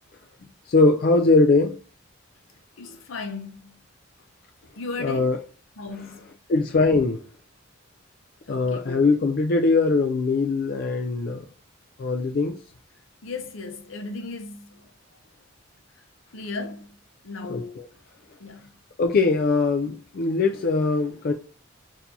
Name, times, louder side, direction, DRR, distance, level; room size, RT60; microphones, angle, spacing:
voice 1, 0.7-1.8 2.9-3.0 5.0-5.4 6.5-7.2 8.5-11.5 12.0-12.6 17.5-17.9 19.0-21.3, left 3 dB, 50° left, 0.4 m, -21 dB
voice 2, 2.8-3.8 4.8-5.4 5.8-6.3 8.5-9.1 13.2-14.8 16.3-16.9 17.2-17.9 18.4-18.7, left 3 dB, 75° left, 0.7 m, -36 dB
4.4 x 2.7 x 2.7 m
head